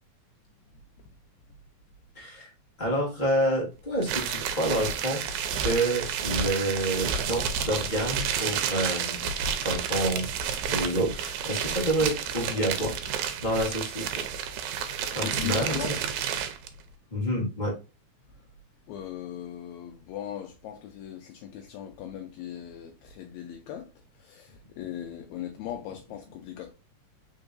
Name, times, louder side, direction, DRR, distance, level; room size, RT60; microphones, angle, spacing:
voice 1, 2.1-2.5 2.8-5.2 5.5-9.3 9.6-10.3 10.7-12.9 13.4-14.2 15.1-15.9 17.1-17.7, right 1 dB, 25° left, 1.1 m, -28 dB
sound 1, 4.0-16.7, right 7 dB, 85° right, 2.1 m, -30 dB
voice 2, 15.2-16.0 18.9-23.9 24.2-26.7, left 11 dB, 80° left, 1.8 m, -38 dB
4.5 x 3.8 x 2.5 m
omnidirectional pair, 3.4 m